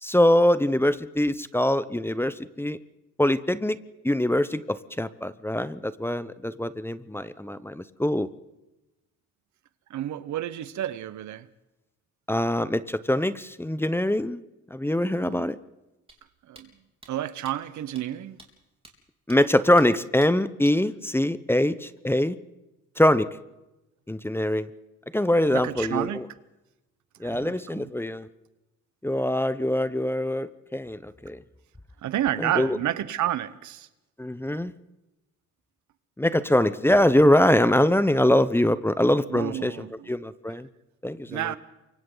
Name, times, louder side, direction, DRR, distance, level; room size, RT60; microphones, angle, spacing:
voice 1, 0.0-2.8 3.2-3.8 4.0-8.3 12.3-14.4 14.7-15.6 19.3-22.4 23.0-23.3 24.1-24.7 25.1-26.3 27.2-28.3 29.0-31.4 32.4-32.8 34.2-34.7 36.2-40.7 41.0-41.5, left 1 dB, 10° left, 0.8 m, -23 dB
voice 2, 9.9-11.5 15.2-15.5 16.5-16.7 17.1-18.4 25.5-26.2 27.2-27.9 32.0-33.9 39.3-40.1 41.3-41.6, right 12 dB, 75° right, 1.1 m, -30 dB
sound 1, 16.1-16.2 16.5-16.7 17.0-17.1 17.4-17.5 17.9-18.0 18.4-18.5 18.8-18.9 19.3-19.4 19.8-19.9 20.2-20.3 20.6-20.8, right 3 dB, 20° right, 4.1 m, -49 dB
28.0 x 24.0 x 4.0 m
cardioid pair, 90°, 30 cm